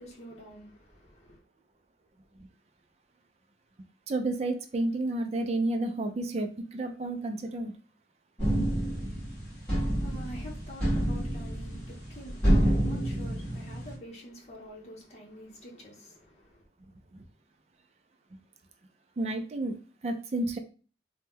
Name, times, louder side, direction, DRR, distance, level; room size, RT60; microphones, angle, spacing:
voice 1, 0.0-1.4 9.7-16.6, equal, 35° left, 0.8 m, -47 dB
voice 2, 4.1-7.7 8.8-8.9 17.1-17.2 19.2-20.6, right 2 dB, 35° right, 0.3 m, -31 dB
sound 1, 8.4-13.9, equal, 5° left, 1.3 m, -28 dB
2.9 x 2.1 x 3.4 m
head